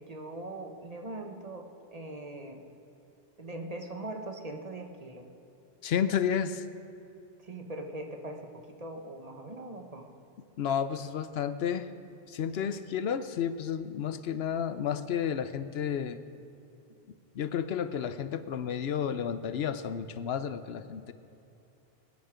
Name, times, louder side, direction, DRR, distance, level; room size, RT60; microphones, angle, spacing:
voice 1, 0.0-2.6 3.4-5.3 7.4-10.1 12.6-12.8, right 2 dB, 40° right, 3 dB, 1.2 m, -41 dB
voice 2, 5.8-6.7 10.6-11.9 12.3-16.2 17.3-21.1, left 8 dB, 80° left, 12 dB, 0.9 m, -31 dB
23.5 x 9.4 x 5.1 m, 2.8 s
omnidirectional pair, 1.0 m